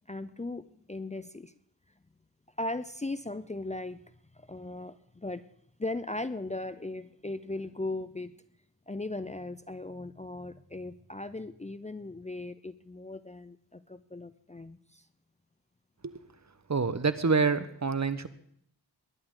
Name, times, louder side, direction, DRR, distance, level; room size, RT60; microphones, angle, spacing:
voice 1, 0.0-1.5 2.6-4.0 4.3-5.4 5.8-8.3 8.9-15.1, left 2 dB, 15° left, 13 dB, 0.6 m, -38 dB
voice 2, 16.7-18.3, right 4 dB, 40° right, 13 dB, 1.1 m, -27 dB
21.5 x 11.0 x 3.9 m, 0.67 s
cardioid pair, 50°, 41 cm